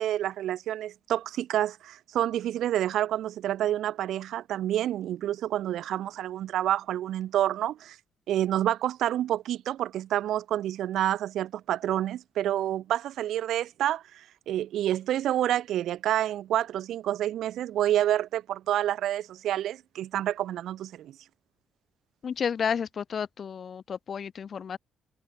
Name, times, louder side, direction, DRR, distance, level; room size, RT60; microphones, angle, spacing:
voice 1, 0.0-8.0 8.3-21.1, right 12 dB, 80° right, 1.6 m, -28 dB
voice 2, 22.2-24.8, left 7 dB, 50° left, 0.9 m, -31 dB
cardioid pair, 90°, 0 cm